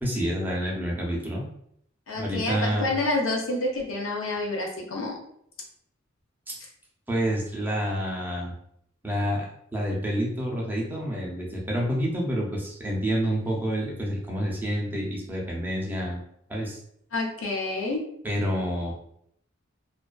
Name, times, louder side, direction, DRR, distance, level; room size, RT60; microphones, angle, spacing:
voice 1, 0.0-1.5 2.1-2.9 6.5-6.6 7.1-8.5 9.0-16.2 16.5-16.8 18.2-19.0, equal, 10° right, -3 dB, 0.5 m, -28 dB
voice 2, 2.1-5.1 17.1-18.0, left 2 dB, 80° left, 0 dB, 0.6 m, -28 dB
2.4 x 2.3 x 2.3 m, 0.69 s
head